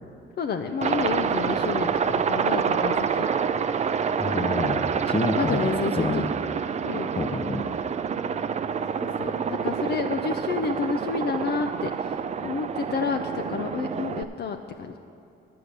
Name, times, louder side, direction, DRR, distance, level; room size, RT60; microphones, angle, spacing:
voice 1, 0.4-3.3 5.3-6.2 6.8-7.1 9.0-12.2 12.4-15.0, left 5 dB, 55° left, 5 dB, 0.6 m, -30 dB
Aircraft, 0.8-14.2, right 6 dB, 35° right, 0.4 m, -27 dB
voice 2, 4.2-4.8 5.1-5.7 6.0-6.3 7.2-7.6, left 3 dB, 30° left, 7 dB, 0.8 m, -27 dB
10.0 x 6.9 x 6.6 m, 2.6 s
cardioid pair, 90°, 20 cm